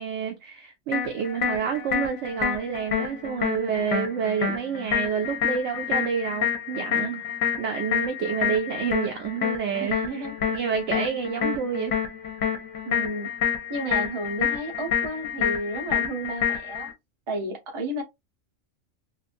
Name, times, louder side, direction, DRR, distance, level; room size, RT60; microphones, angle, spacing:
voice 1, 0.0-7.2 7.6-12.0, right 7 dB, 70° right, 0.8 m, -29 dB
sound 1, 0.9-16.9, left 8 dB, 60° left, 0.9 m, -28 dB
voice 2, 9.8-10.3 10.9-11.0 12.8-13.3 13.7-16.9 17.3-18.0, right 1 dB, 35° right, 0.5 m, -32 dB
2.9 x 2.4 x 2.5 m
omnidirectional pair, 1.3 m